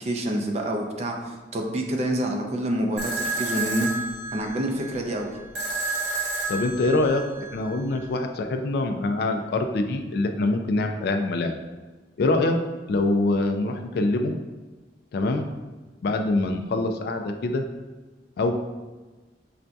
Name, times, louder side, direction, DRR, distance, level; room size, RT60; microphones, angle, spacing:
voice 1, 0.0-4.0 4.3-5.3, right 1 dB, 35° right, 2 dB, 0.4 m, -27 dB
sound 1, 3.0-8.0, right 2 dB, 80° right, 0.8 m, -31 dB
voice 2, 6.5-11.5 12.2-12.6 12.9-14.3 15.1-15.5 16.0-17.6 18.4-18.5, left 2 dB, 60° left, 5 dB, 0.3 m, -24 dB
5.6 x 2.6 x 2.2 m, 1.3 s
head